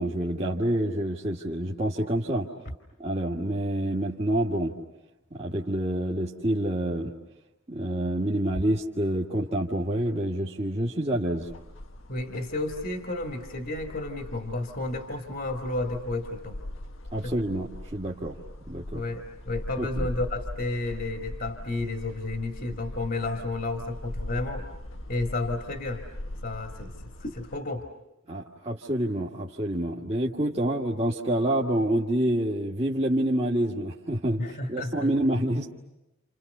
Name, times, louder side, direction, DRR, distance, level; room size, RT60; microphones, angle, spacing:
voice 1, 0.0-2.5 3.0-4.7 5.3-7.1 7.7-11.5 17.1-18.4 18.7-19.0 19.8-20.1 28.3-34.4 34.7-35.7, right 1 dB, 30° right, -3 dB, 1.8 m, -27 dB
sound 1, 11.4-27.6, left 1 dB, 80° left, 1.6 m, -40 dB
voice 2, 12.1-16.6 17.2-17.3 18.9-24.7 25.1-26.0 26.4-26.9 27.2-27.9 34.4-35.1, left 2 dB, 50° left, 4 dB, 2.1 m, -32 dB
30.0 x 29.0 x 6.8 m, 0.96 s
head